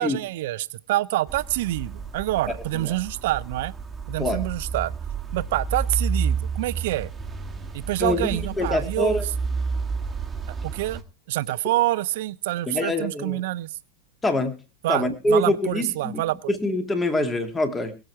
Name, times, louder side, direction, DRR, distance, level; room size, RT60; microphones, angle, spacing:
voice 1, 0.0-3.7 4.1-4.9 5.3-7.1 7.7-9.2 10.6-11.0 11.3-13.7 14.8-16.5, right 16 dB, 50° right, 0.6 m, -26 dB
sound 1, 1.3-11.0, right 5 dB, 10° right, 1.9 m, -31 dB
voice 2, 8.0-9.2 12.7-13.4 14.2-14.6 14.9-16.2 16.5-17.9, left 1 dB, 15° left, 2.3 m, -25 dB
22.0 x 7.7 x 4.6 m
figure-of-eight pair, 90°, 0 cm